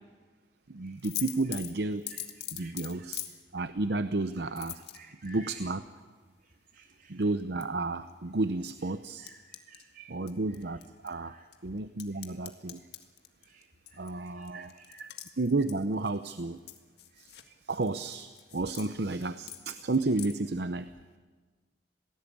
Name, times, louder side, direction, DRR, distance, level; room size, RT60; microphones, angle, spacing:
voice 1, 0.7-2.1 2.5-3.2 3.5-4.8 5.2-5.8 7.1-9.3 10.1-11.4 11.6-12.8 14.0-15.1 15.4-16.6 17.2-17.4 17.7-20.9, right 2 dB, 65° right, 11 dB, 0.8 m, -32 dB
sound 1, 1.0-3.3 4.6-5.3 7.2-7.6 8.1-8.2 9.3-9.8 10.3-11.1 11.5-16.3 16.7-17.5 17.8-18.9 19.2-19.6 19.9-20.3, left 13 dB, 60° left, 1.9 m, -41 dB
voice 2, 4.9-5.6 6.7-7.2 9.2-10.2 11.1-11.4 13.5-13.7 13.9-15.0, right 3 dB, 50° right, 3 dB, 3.4 m, -55 dB
27.5 x 18.5 x 8.6 m, 1.4 s
head